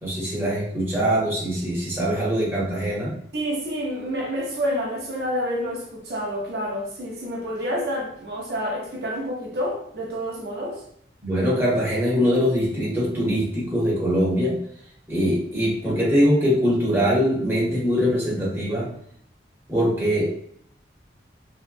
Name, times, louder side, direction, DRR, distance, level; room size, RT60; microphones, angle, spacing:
voice 1, 0.0-3.1 11.2-14.6 15.1-18.9 19.7-20.3, equal, 15° right, -7 dB, 0.8 m, -22 dB
voice 2, 3.3-10.8, equal, 60° right, -2 dB, 0.6 m, -28 dB
2.8 x 2.1 x 2.5 m, 0.66 s
head